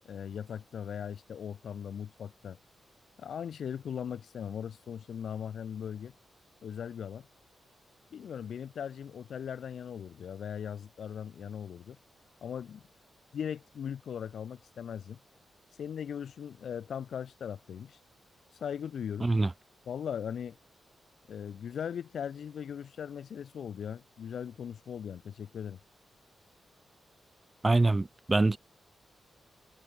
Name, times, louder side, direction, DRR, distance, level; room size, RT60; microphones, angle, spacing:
voice 1, 0.1-2.6 3.2-6.1 6.6-7.3 8.1-12.0 12.4-12.8 13.3-15.2 15.8-18.0 18.6-19.3 19.9-20.6 21.3-25.8, left 8 dB, 65° left, 4.1 m, -39 dB
voice 2, 27.6-28.6, right 2 dB, 15° right, 0.8 m, -25 dB
wide cardioid pair, 175°, 0 cm